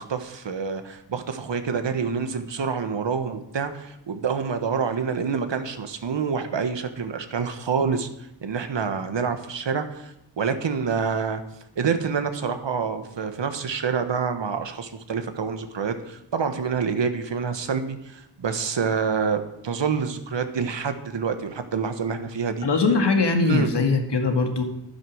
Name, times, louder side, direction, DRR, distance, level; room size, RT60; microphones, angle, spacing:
voice 1, 0.0-8.1 8.4-11.4 11.8-22.7 23.4-23.7, right 6 dB, 75° right, 8 dB, 1.5 m, -27 dB
voice 2, 22.6-24.6, left 3 dB, 65° left, 4 dB, 2.1 m, -21 dB
11.5 x 10.0 x 6.4 m, 0.81 s
wide cardioid pair, 80°, 44 cm